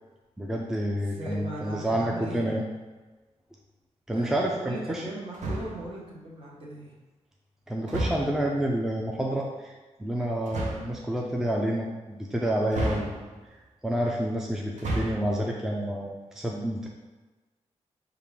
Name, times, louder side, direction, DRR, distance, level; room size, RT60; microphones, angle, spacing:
voice 1, 0.4-2.6 4.1-5.0 7.7-9.7 10.0-13.2 13.8-16.9, right 1 dB, 5° right, -1 dB, 0.4 m, -29 dB
voice 2, 0.9-2.6 4.1-6.9, right 1 dB, 50° right, -5 dB, 1.2 m, -39 dB
sound 1, 5.3-5.9 7.9-8.5 10.4-11.0 12.7-13.5 14.7-15.4, right 1 dB, 85° right, 0.7 m, -32 dB
4.9 x 2.4 x 3.5 m, 1.2 s
wide cardioid pair, 125°, 12 cm